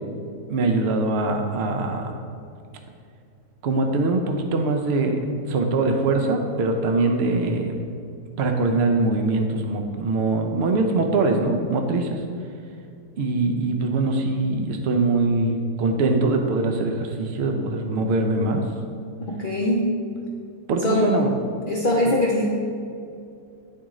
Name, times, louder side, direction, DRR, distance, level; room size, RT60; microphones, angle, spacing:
voice 1, 0.5-2.1 3.6-5.2 5.5-7.7 8.4-12.2 13.2-18.6 20.7-21.3, right 3 dB, 75° right, 4 dB, 0.6 m, -22 dB
voice 2, 19.2-19.9 20.8-21.1 21.7-22.5, left 1 dB, 75° left, -3 dB, 0.4 m, -22 dB
9.8 x 3.7 x 3.0 m, 2.4 s
omnidirectional pair, 1.7 m